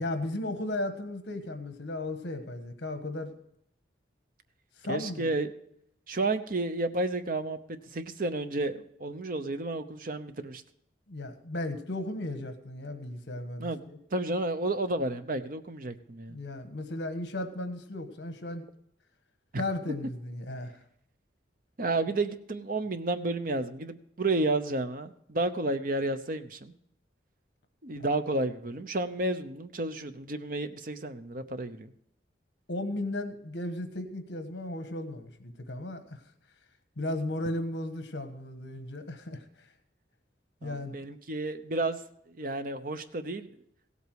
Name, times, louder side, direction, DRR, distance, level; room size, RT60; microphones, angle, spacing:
voice 1, 0.0-3.3 4.8-5.3 11.1-14.0 16.3-18.6 19.6-20.8 27.9-28.1 32.7-36.2 37.0-39.7 40.6-41.1, left 1 dB, 65° left, 8 dB, 1.4 m, -35 dB
voice 2, 4.9-5.5 6.1-7.6 7.9-10.6 13.6-13.8 14.1-16.4 19.5-19.6 21.8-26.7 27.8-31.9 40.6-42.0 42.3-43.5, right 2 dB, 45° right, 10 dB, 0.8 m, -31 dB
16.5 x 8.3 x 4.7 m, 0.73 s
head